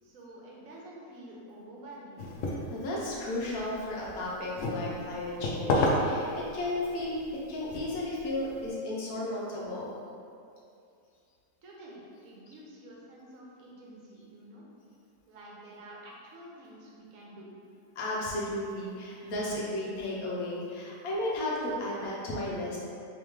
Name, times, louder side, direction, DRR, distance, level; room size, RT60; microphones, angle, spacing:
voice 1, 0.0-2.2 11.6-14.7 15.3-17.6, right 1 dB, 70° right, -4 dB, 1.1 m, -49 dB
sound 1, 2.2-8.7, left 1 dB, 70° left, 0.9 m, -33 dB
voice 2, 2.5-7.2 7.5-9.9 18.0-22.8, left 1 dB, 85° left, -4 dB, 1.2 m, -34 dB
3.5 x 3.2 x 3.0 m, 2.5 s
omnidirectional pair, 1.5 m